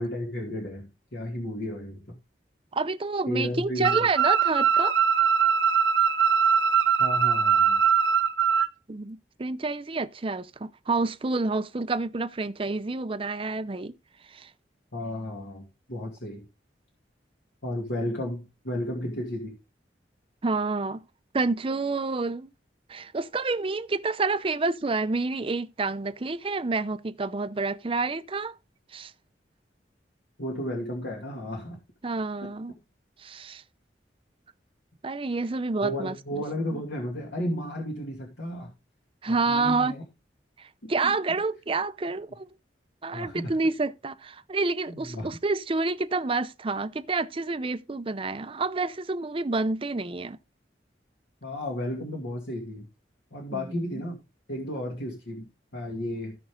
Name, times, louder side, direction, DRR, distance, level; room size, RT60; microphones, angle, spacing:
voice 1, 0.0-2.2 3.3-4.1 7.0-7.8 14.9-16.5 17.6-19.6 30.4-31.8 32.4-32.5 35.8-38.7 39.5-40.0 40.8-41.1 43.1-43.5 44.9-45.4 51.4-52.9 53.3-54.2 54.5-56.4, left 1 dB, 75° left, 2.5 m, -33 dB
voice 2, 2.7-5.0 8.9-13.9 14.3-14.5 20.4-21.0 21.3-22.5 22.9-28.5 28.9-29.1 32.0-32.7 33.2-33.6 35.0-36.4 36.7-36.8 39.2-39.9 40.6-42.5 43.0-50.4 53.5-54.0, right 3 dB, 30° right, 0.5 m, -28 dB
sound 1, 3.8-8.7, right 7 dB, 75° right, 0.6 m, -22 dB
15.5 x 5.4 x 3.7 m
head